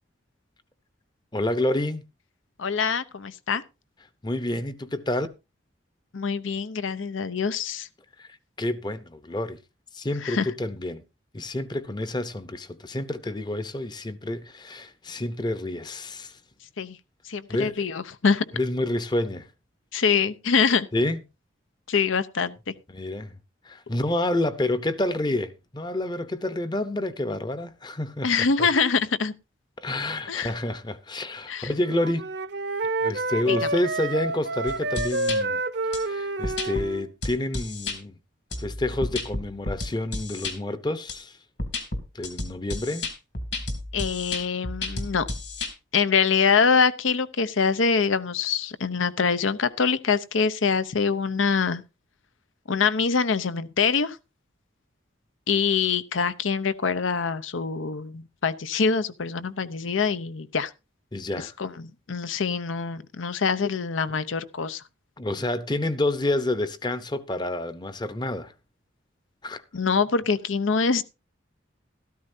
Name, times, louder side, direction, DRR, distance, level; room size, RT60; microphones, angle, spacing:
voice 1, 1.3-2.0 4.2-5.3 8.2-8.3 8.6-9.6 9.9-11.0 11.3-16.4 17.5-17.9 18.5-19.5 20.9-21.2 22.9-23.4 23.6-28.7 29.8-32.3 33.0-38.2 38.6-41.4 42.1-43.1 61.1-61.5 64.1-64.2 65.2-68.5 69.4-69.6, left 1 dB, 20° left, 0.7 m, -29 dB
voice 2, 2.6-3.6 6.1-7.9 10.2-10.5 16.8-17.0 17.2-18.4 19.9-20.9 21.9-22.6 28.2-29.3 30.3-30.5 31.5-31.7 33.5-33.6 43.9-45.3 45.9-51.8 52.7-54.2 55.5-60.7 61.4-64.8 69.7-71.0, left 5 dB, 85° left, 0.7 m, -24 dB
Wind instrument woodwind instrument, 31.8-37.1, right 2 dB, 60° right, 0.7 m, -29 dB
sound 1, 34.7-35.4 35.9-36.0 36.4-36.9 37.2-38.0 38.5-40.5 41.1-41.2 41.6-45.7, left 2 dB, 60° left, 2.4 m, -32 dB
13.0 x 13.0 x 2.7 m
head